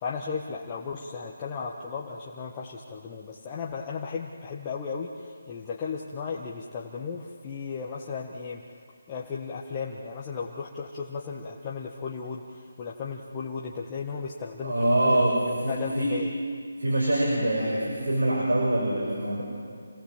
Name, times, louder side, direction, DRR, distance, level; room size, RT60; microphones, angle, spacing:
voice 1, 0.0-8.6 9.1-15.2 15.7-16.3, left 5 dB, 25° left, -2 dB, 1.5 m, -35 dB
voice 2, 14.6-16.1 16.8-19.4, right 1 dB, 80° right, -3 dB, 6.2 m, -24 dB
27.5 x 19.0 x 7.7 m, 2.2 s
figure-of-eight pair, 160°, 0 cm